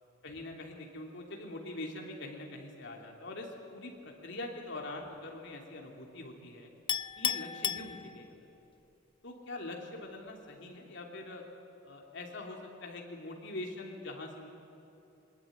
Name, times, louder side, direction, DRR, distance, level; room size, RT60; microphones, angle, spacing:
voice 1, 0.2-6.7 7.2-8.5 9.2-11.4 11.8-14.5, left 2 dB, 65° left, 1 dB, 3.0 m, -43 dB
Chink clink, 6.9-8.6, left 9 dB, 25° left, 0.5 m, -34 dB
22.5 x 20.5 x 9.4 m, 2.8 s
head